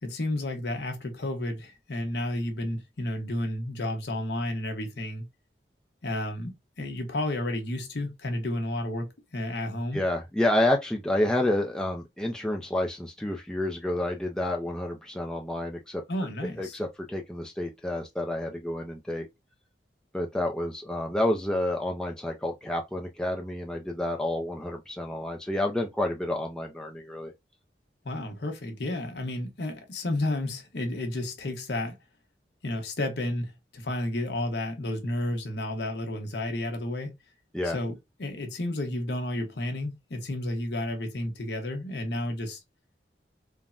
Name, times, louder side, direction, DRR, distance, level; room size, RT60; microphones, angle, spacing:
voice 1, 0.0-5.3 6.0-10.0 16.1-16.8 28.0-32.0 32.6-37.1 37.6-42.6, left 1 dB, 70° left, 0.8 m, -32 dB
voice 2, 9.9-16.0 16.6-19.3 20.1-27.3 37.5-37.8, left 1 dB, 5° left, 0.3 m, -29 dB
3.4 x 2.1 x 2.4 m
head